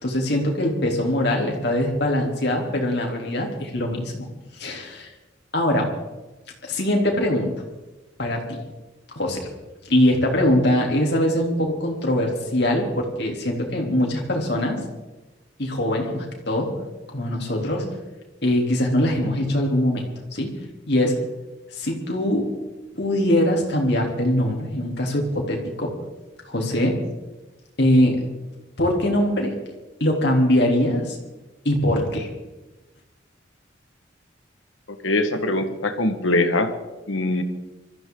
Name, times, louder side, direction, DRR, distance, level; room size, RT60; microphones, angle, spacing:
voice 1, 0.0-4.3 4.5-5.1 5.5-5.9 6.6-7.5 8.2-8.6 9.2-9.5 9.9-14.8 15.6-16.7 17.1-17.9 18.4-20.5 20.9-21.2 21.7-22.5 23.0-25.9 26.5-26.9 27.8-28.2 28.8-29.6 30.0-31.2 31.7-32.3, left 1 dB, 55° left, 0 dB, 3.6 m, -22 dB
voice 2, 35.0-36.7 37.1-37.4, left 2 dB, 85° left, 7 dB, 1.8 m, -22 dB
23.5 x 14.5 x 4.0 m, 1.1 s
head